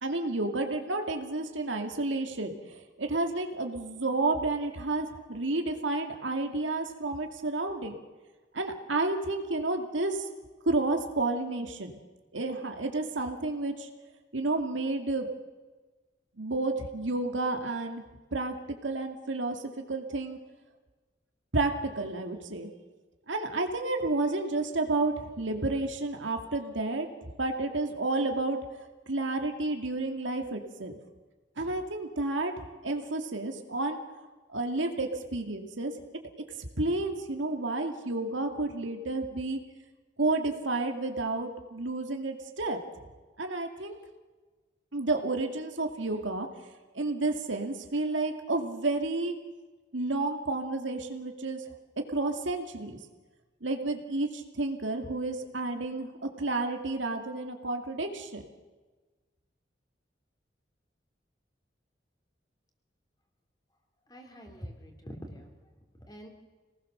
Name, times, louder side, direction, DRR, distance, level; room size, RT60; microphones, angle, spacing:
voice 1, 0.0-7.9 8.5-10.3 10.7-11.9 12.3-13.9 14.3-15.3 16.4-18.0 18.3-18.5 18.8-20.4 21.5-22.7 23.3-27.1 27.4-28.6 29.1-30.9 31.6-32.5 32.8-34.0 34.5-35.9 36.8-39.6 40.2-42.8 43.4-44.0 44.9-46.5 46.9-49.4 49.9-51.6 52.1-53.0 53.6-58.4, right 2 dB, 90° right, 4 dB, 2.3 m, -31 dB
voice 2, 64.1-65.5 66.1-66.3, equal, 20° left, 2 dB, 3.2 m, -44 dB
26.5 x 19.0 x 6.7 m, 1.3 s
head